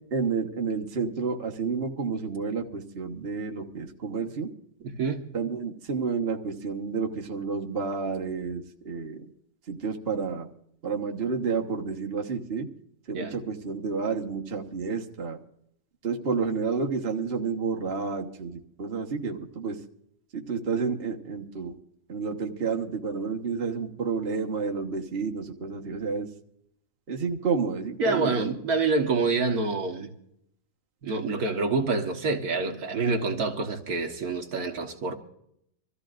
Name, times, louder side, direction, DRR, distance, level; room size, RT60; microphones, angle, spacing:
voice 1, 0.1-4.5 5.3-9.3 9.7-10.5 10.8-12.7 13.1-15.4 16.0-19.8 20.3-21.7 22.1-26.3 27.1-28.5, right 5 dB, 40° right, 1.5 m, -30 dB
voice 2, 4.8-5.3 13.1-13.3 28.0-30.1 31.0-35.1, right 3 dB, 75° right, 1.9 m, -27 dB
26.0 x 14.5 x 2.5 m
omnidirectional pair, 1.6 m